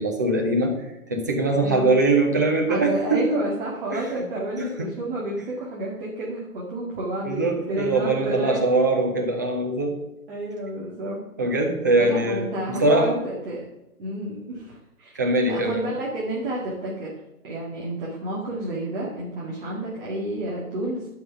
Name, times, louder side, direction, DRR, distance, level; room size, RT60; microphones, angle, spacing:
voice 1, 0.0-3.4 3.9-4.1 4.6-4.9 7.2-10.0 11.4-13.2 15.1-15.8, right 2 dB, 15° right, 2 dB, 0.5 m, -22 dB
voice 2, 1.6-2.0 2.7-8.6 10.3-11.2 12.0-13.6 14.0-15.2 15.5-17.1 17.4-21.1, right 1 dB, 40° right, -5 dB, 2.2 m, -30 dB
11.0 x 5.4 x 5.8 m, 0.90 s
figure-of-eight pair, 140°, 44 cm